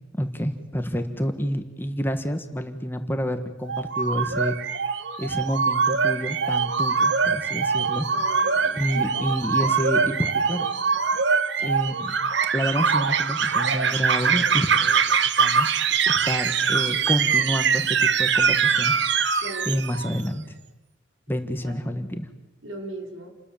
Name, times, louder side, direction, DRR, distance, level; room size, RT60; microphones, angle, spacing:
voice 1, 0.1-4.6 5.2-8.1 8.8-10.7 11.6-12.1 12.5-15.7 16.1-20.4 21.3-22.3, equal, 10° left, 7 dB, 1.5 m, -29 dB
sound 1, 3.6-20.2, right 6 dB, 60° right, 1.1 m, -23 dB
voice 2, 8.1-9.1 19.4-19.8 21.6-21.8 22.6-23.3, right 2 dB, 85° right, 1 dB, 5.2 m, -38 dB
29.0 x 21.0 x 7.2 m, 1.0 s
head